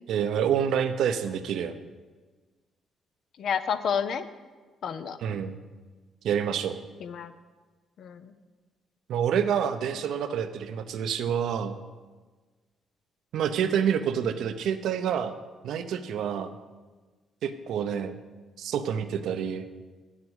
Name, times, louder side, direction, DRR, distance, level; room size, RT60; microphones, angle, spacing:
voice 1, 0.1-1.8 5.2-5.6 6.2-6.8 9.1-11.8 13.3-15.4 15.6-16.5 17.4-18.2 18.6-19.6, right 8 dB, 75° right, 9 dB, 0.7 m, -27 dB
voice 2, 3.4-4.2 4.8-5.2 7.0-7.3 8.0-8.3 16.3-16.5, left 7 dB, 65° left, 11 dB, 0.7 m, -30 dB
8.6 x 7.4 x 8.0 m, 1.3 s
cardioid pair, 90°, 0 cm